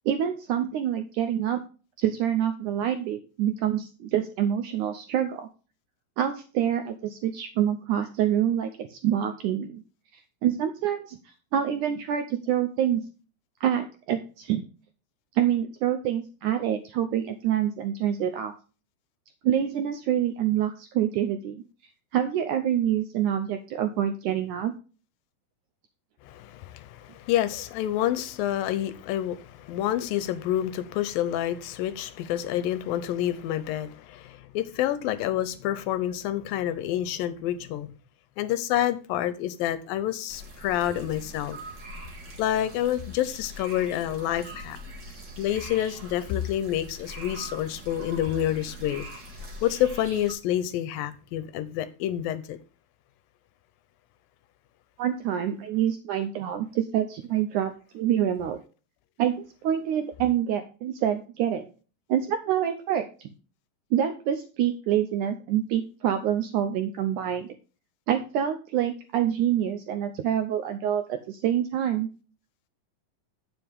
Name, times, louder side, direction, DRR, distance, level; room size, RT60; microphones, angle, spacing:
voice 1, 0.1-1.6 2.0-5.5 6.2-9.8 10.4-13.0 13.6-14.6 15.4-18.5 19.4-21.6 22.1-24.7 55.0-58.6 59.2-61.7 62.1-63.3 63.9-67.5 68.1-72.1, right 10 dB, 80° right, 1.8 m, -26 dB
voice 2, 26.2-37.9 38.4-41.6 42.4-44.8 45.4-49.1 49.6-52.6, left 12 dB, 75° left, 2.3 m, -28 dB
sound 1, 40.3-50.3, equal, 40° right, 1.8 m, -42 dB
9.1 x 7.6 x 3.5 m
omnidirectional pair, 4.3 m